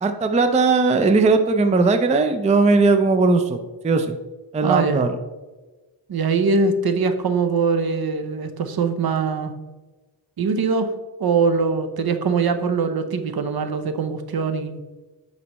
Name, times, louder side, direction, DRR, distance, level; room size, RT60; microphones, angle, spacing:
voice 1, 0.0-3.6 3.8-4.2 4.5-5.1, right 3 dB, 15° right, 7 dB, 0.4 m, -18 dB
voice 2, 4.6-5.0 6.1-9.5 10.4-10.9 11.2-14.8, right 4 dB, 55° right, 9 dB, 0.7 m, -22 dB
9.5 x 4.1 x 3.0 m, 1.2 s
wide cardioid pair, 95°, 45 cm